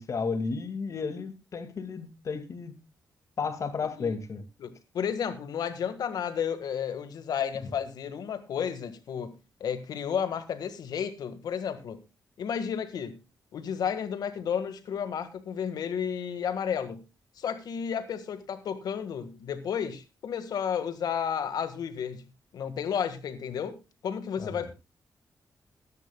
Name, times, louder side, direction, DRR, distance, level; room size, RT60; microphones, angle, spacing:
voice 1, 0.0-2.8 3.4-4.4 7.6-7.7 24.4-24.5, left 5 dB, 55° left, 9 dB, 2.1 m, -33 dB
voice 2, 4.6-12.0 12.4-13.2 13.5-17.0 17.4-24.7, left 7 dB, 85° left, 11 dB, 1.7 m, -32 dB
21.5 x 10.5 x 2.3 m, 0.26 s
wide cardioid pair, 125°, 7 cm